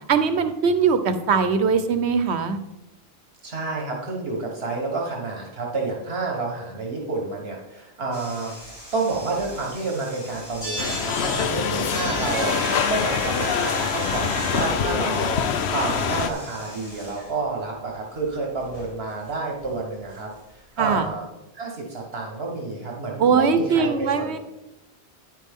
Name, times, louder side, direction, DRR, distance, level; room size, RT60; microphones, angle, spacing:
voice 1, 0.1-2.6 20.8-21.0 23.2-24.4, right 5 dB, 90° right, 10 dB, 1.1 m, -21 dB
voice 2, 3.4-8.7 8.9-21.2 21.5-24.4, right 3 dB, 70° right, -1 dB, 1.6 m, -29 dB
sound 1, 8.1-17.4 17.8-17.9 18.2-18.3 18.6-18.9 19.3-19.4 19.6-19.7 21.0-21.1, equal, 25° left, 2.8 m, -35 dB
sound 2, 10.8-16.3, left 7 dB, 80° left, 1.0 m, -25 dB
10.0 x 8.4 x 3.6 m, 0.93 s
omnidirectional pair, 1.1 m